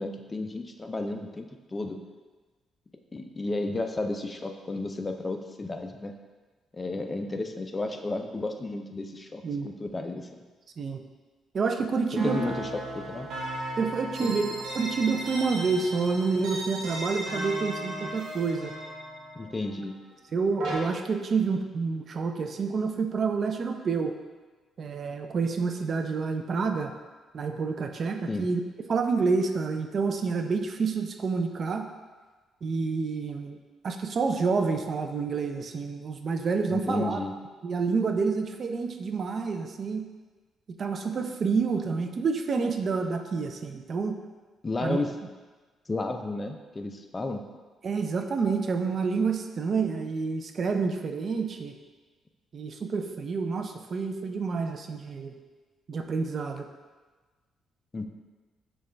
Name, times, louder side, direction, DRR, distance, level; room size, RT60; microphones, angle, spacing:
voice 1, 0.0-2.0 3.1-6.1 6.7-10.4 12.1-13.3 14.2-14.4 19.4-19.9 28.3-28.5 36.7-37.3 44.6-45.1 45.9-47.4 57.9-58.1, left 2 dB, 25° left, 5 dB, 0.4 m, -32 dB
voice 2, 11.5-12.4 13.8-18.7 20.3-24.1 24.8-26.9 27.3-28.6 28.9-31.9 32.6-33.6 33.8-37.2 37.6-40.1 40.8-44.2 44.8-45.0 47.8-51.7 52.5-55.4 55.9-56.7, right 4 dB, 50° right, 6 dB, 0.3 m, -28 dB
sound 1, 12.2-20.8, right 1 dB, 80° right, 1.2 m, -36 dB
6.3 x 2.3 x 3.3 m, 1.3 s
cardioid pair, 90°, 0 cm